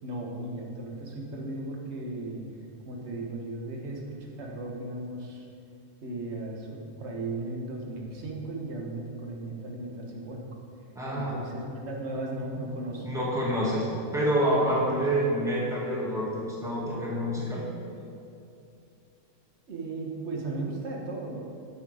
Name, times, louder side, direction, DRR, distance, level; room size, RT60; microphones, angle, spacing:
voice 1, 0.0-2.4 2.9-5.5 6.0-10.4 11.1-13.3 14.6-15.1 19.7-21.4, right 2 dB, 50° right, -1 dB, 1.4 m, -36 dB
voice 2, 10.9-11.3 13.0-17.6, right 1 dB, ahead, -6 dB, 1.5 m, -27 dB
7.2 x 6.2 x 4.9 m, 2.6 s
omnidirectional pair, 1.5 m